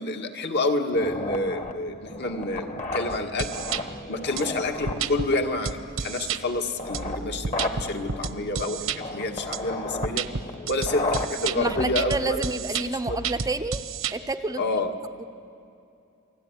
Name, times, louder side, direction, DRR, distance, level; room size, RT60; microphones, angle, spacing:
voice 1, 0.0-3.5 4.1-10.3 10.7-13.2 14.6-14.9, left 2 dB, 50° left, 4 dB, 1.9 m, -28 dB
sound 1, 0.9-12.9, left 2 dB, 35° left, 1.6 m, -34 dB
sound 2, 3.1-3.8 4.4-4.5 4.9-5.3 5.7-6.4 6.9-9.0 9.5-9.6 10.0-14.1, right 6 dB, 75° right, 1.0 m, -31 dB
voice 2, 11.4-13.8 14.1-14.7 15.2-15.3, right 2 dB, 15° right, 9 dB, 0.7 m, -29 dB
29.0 x 20.5 x 9.9 m, 2.6 s
head